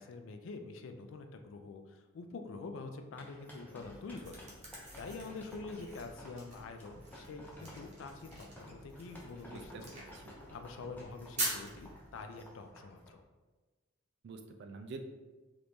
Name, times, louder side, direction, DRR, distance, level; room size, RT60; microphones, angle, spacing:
voice 1, 0.0-4.4 4.8-9.9 10.5-13.2, left 3 dB, 65° left, 6 dB, 0.3 m, -46 dB
sound 1, 3.2-13.1, left 1 dB, 10° left, 0.5 m, -54 dB
sound 2, 3.8-12.2, right 2 dB, 35° right, 0.7 m, -45 dB
voice 2, 9.4-10.3 14.2-15.0, right 4 dB, 55° right, 5 dB, 0.3 m, -47 dB
3.0 x 2.6 x 3.4 m, 1.3 s
head